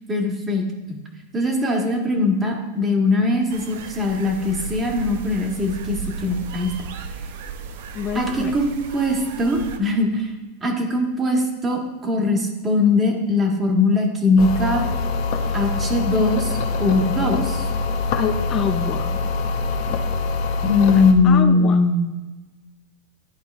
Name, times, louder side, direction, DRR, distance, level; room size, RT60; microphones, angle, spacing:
voice 1, 0.1-0.6 0.9-1.0 1.3-6.7 8.1-10.3 10.6-14.9 15.5-17.7 20.6-22.0, left 2 dB, 20° right, 1 dB, 1.6 m, -20 dB
sound 1, 3.5-9.8, right 5 dB, 70° right, 0.6 m, -34 dB
voice 2, 7.9-8.6 18.2-19.2 19.9-20.0 20.9-21.8, left 7 dB, 35° left, 7 dB, 0.5 m, -27 dB
sound 2, 14.4-21.1, left 3 dB, 60° left, 0.8 m, -24 dB
11.0 x 4.3 x 3.5 m, 1.2 s
hypercardioid pair, 110°, 0 cm